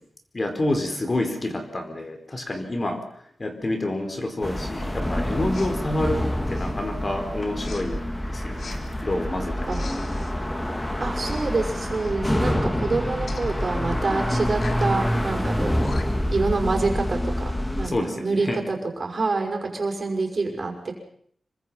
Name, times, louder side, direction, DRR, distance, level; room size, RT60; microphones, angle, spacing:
voice 1, 0.3-3.0 3.4-8.0 8.3-10.0 17.8-18.6, left 1 dB, 35° left, 5 dB, 4.5 m, -28 dB
sound 1, 4.4-17.9, left 1 dB, 15° left, 2.6 m, -27 dB
Respiratory sounds, 5.5-5.8 6.4-6.8 7.6-7.8 8.6-8.8 9.7-10.3 11.1-11.5 11.9-12.2 13.3-13.5 14.5-14.9 15.5-15.6 15.8-16.3, left 4 dB, 65° left, 3.3 m, -42 dB
voice 2, 11.0-15.8 16.3-20.9, right 3 dB, 45° right, 3 dB, 5.8 m, -27 dB
27.0 x 23.5 x 5.7 m, 0.64 s
wide cardioid pair, 90°, 0 cm